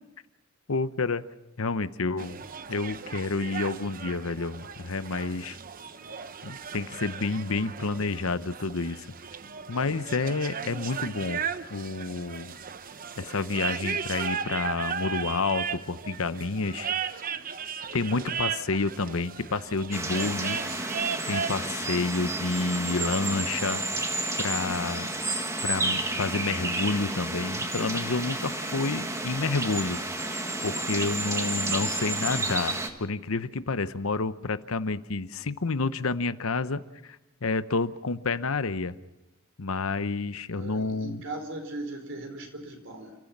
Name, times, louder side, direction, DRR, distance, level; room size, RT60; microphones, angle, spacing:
voice 1, 0.7-1.3 1.6-2.4 2.7-5.6 6.4-9.1 9.7-11.4 11.7-12.5 13.2-16.9 17.9-20.6 21.3-23.8 24.4-25.1 25.6-30.0 30.6-37.2 37.4-38.9 39.6-41.2, left 3 dB, 85° left, 13 dB, 0.9 m, -29 dB
sound 1, 2.2-21.7, right 6 dB, 45° right, 0.9 m, -36 dB
sound 2, 19.9-32.9, right 2 dB, 15° right, 1.8 m, -31 dB
voice 2, 40.5-43.2, right 2 dB, 65° right, 4 dB, 4.6 m, -39 dB
29.5 x 14.5 x 7.3 m, 1.0 s
head